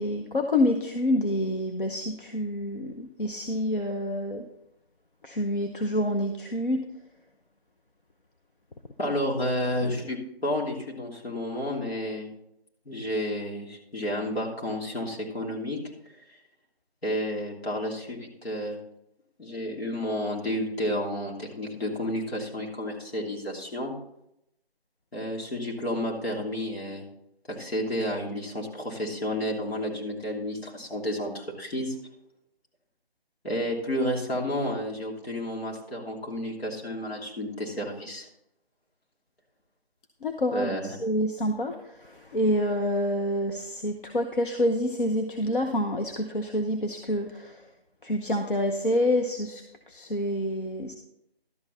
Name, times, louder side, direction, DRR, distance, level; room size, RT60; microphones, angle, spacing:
voice 1, 0.0-4.5 5.2-6.8 40.2-47.7 48.0-51.0, left 1 dB, 55° left, 4 dB, 0.9 m, -27 dB
voice 2, 9.0-12.3 12.8-15.8 17.0-18.8 19.4-23.9 25.1-27.0 27.5-31.9 33.4-38.3 40.5-40.9, equal, 75° left, -2 dB, 3.1 m, -31 dB
12.0 x 8.0 x 4.0 m, 0.80 s
figure-of-eight pair, 170°, 31 cm